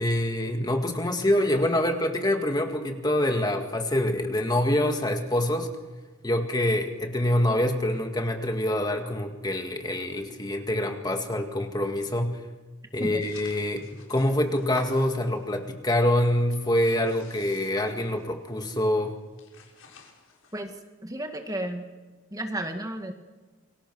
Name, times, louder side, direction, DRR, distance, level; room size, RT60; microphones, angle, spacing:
voice 1, 0.0-5.7 6.2-12.4 12.9-19.2, left 1 dB, 20° left, 4 dB, 2.0 m, -25 dB
sound 1, 13.2-15.7 16.0-18.5 18.8-19.0 19.2-20.6, left 4 dB, 80° left, 6.4 m, -49 dB
voice 2, 20.5-21.9 22.3-23.1, right 1 dB, 15° right, 5 dB, 2.0 m, -33 dB
29.0 x 24.0 x 6.3 m, 1.2 s
head